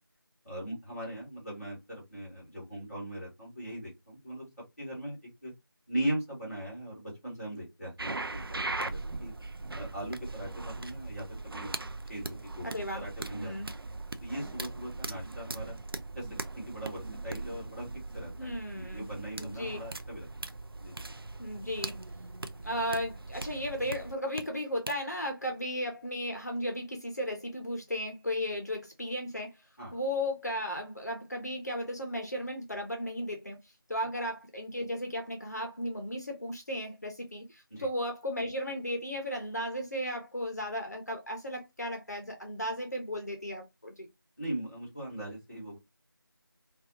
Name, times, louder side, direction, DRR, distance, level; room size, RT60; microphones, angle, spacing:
voice 1, 0.4-4.5 4.8-5.2 5.4-5.5 5.9-8.4 8.8-9.3 9.7-11.7 12.1-12.7 12.9-13.8 14.2-15.7 16.1-16.3 16.6-17.8 18.1-20.3 20.8-21.0 29.8-30.0 37.7-37.9 44.4-45.8, right 1 dB, ahead, 1.0 m, -39 dB
sound 1, 8.0-24.4 24.9-25.0, right 2 dB, 75° right, 0.4 m, -40 dB
voice 2, 12.6-13.0 13.3-13.7 18.4-19.1 19.4-19.8 21.4-21.9 22.6-29.6 29.9-33.6 33.9-44.1, equal, 45° left, 0.6 m, -35 dB
2.6 x 2.3 x 2.7 m
figure-of-eight pair, 170°, 12 cm